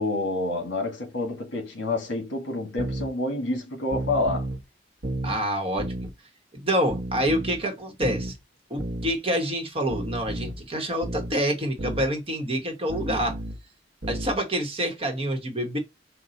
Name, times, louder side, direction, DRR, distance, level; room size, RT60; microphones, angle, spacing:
voice 1, 0.0-4.5, left 2 dB, 75° left, 1.6 m, -28 dB
sound 1, 2.8-3.1 3.9-4.6 5.0-5.4 5.8-6.1 6.9-7.6 8.0-8.3 8.8-9.1 9.9-10.6 11.0-11.4 11.8-12.1 12.9-13.6 14.0-14.4, right 1 dB, 70° right, 1.0 m, -32 dB
voice 2, 5.2-6.1 6.6-8.3 8.7-13.4 14.1-15.8, equal, 30° right, 1.1 m, -27 dB
5.6 x 2.3 x 3.9 m
head